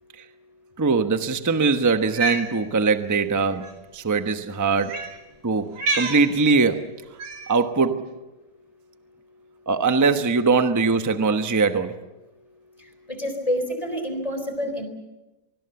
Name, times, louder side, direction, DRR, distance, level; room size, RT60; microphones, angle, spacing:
voice 1, 0.8-3.7 3.9-5.0 5.4-6.9 7.5-8.1 9.7-12.0, right 4 dB, 15° right, 8 dB, 0.5 m, -21 dB
Cat, 2.0-2.5 3.5-3.7 4.8-5.1 5.7-6.2 7.2-7.5, right 3 dB, 70° right, 3.4 m, -27 dB
voice 2, 13.1-14.9, equal, 15° left, 6 dB, 4.0 m, -27 dB
25.5 x 20.5 x 7.1 m, 1.1 s
omnidirectional pair, 2.3 m